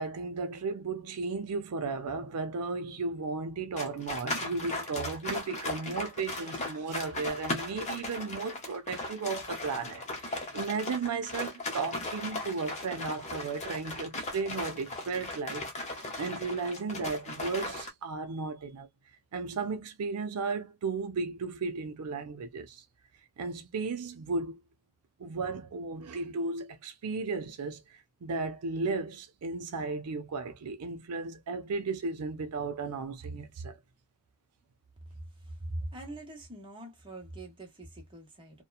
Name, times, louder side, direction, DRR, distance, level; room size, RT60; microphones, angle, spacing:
voice 1, 0.0-18.9 19.3-22.8 23.4-24.6 25.2-27.8 28.2-33.8, right 4 dB, 90° right, 0.5 m, -35 dB
sound 1, 3.8-17.9, left 2 dB, 30° left, 0.8 m, -37 dB
voice 2, 35.4-38.6, right 1 dB, 20° right, 0.9 m, -42 dB
2.8 x 2.2 x 2.2 m
head